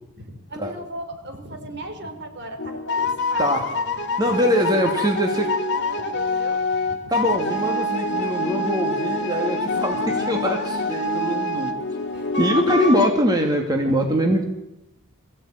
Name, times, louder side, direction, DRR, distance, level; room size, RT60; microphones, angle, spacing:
voice 1, 0.2-3.6 4.3-4.4 4.7-7.4 12.1-13.0 13.8-14.4, right 1 dB, 55° right, 6 dB, 3.6 m, -38 dB
sound 1, 2.6-13.1, left 2 dB, 55° left, 2.3 m, -25 dB
voice 2, 4.2-5.5 7.1-11.7 12.4-14.5, equal, 20° right, 2 dB, 2.3 m, -22 dB
22.0 x 15.5 x 9.1 m, 0.94 s
head